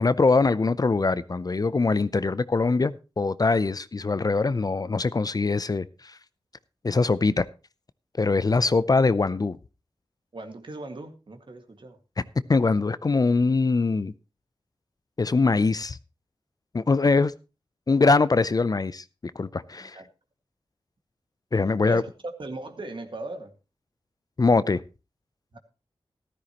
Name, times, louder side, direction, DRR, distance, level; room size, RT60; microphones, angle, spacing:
voice 1, 0.0-6.2 6.8-7.5 8.2-9.6 12.5-14.1 15.2-16.0 16.7-17.3 17.9-19.0 19.4-20.0 21.5-22.0 24.4-24.8, left 3 dB, 40° left, 0.5 m, -22 dB
voice 2, 10.3-12.0 19.8-20.1 21.8-23.5 25.5-25.6, right 2 dB, 55° right, 1.9 m, -38 dB
14.0 x 12.5 x 3.0 m
wide cardioid pair, 60°, 10 cm